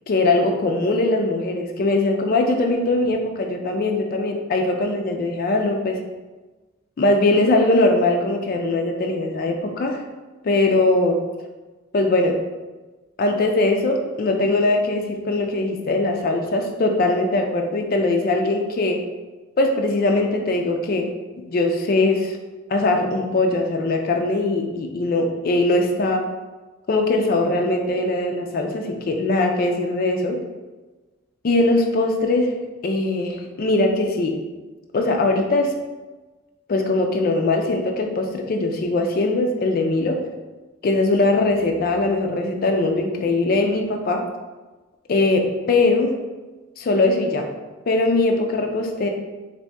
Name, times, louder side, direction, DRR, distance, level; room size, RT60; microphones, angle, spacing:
voice 1, 0.1-6.0 7.0-10.0 10.4-11.2 11.9-12.4 13.2-19.0 19.6-21.1 21.5-22.3 22.7-26.3 26.9-30.4 31.4-32.5 32.8-34.4 34.9-35.7 36.7-40.2 40.8-44.2 45.1-46.1 46.8-47.5 47.9-49.1, left 2 dB, 45° left, 3 dB, 0.3 m, -21 dB
2.7 x 2.6 x 3.3 m, 1.2 s
head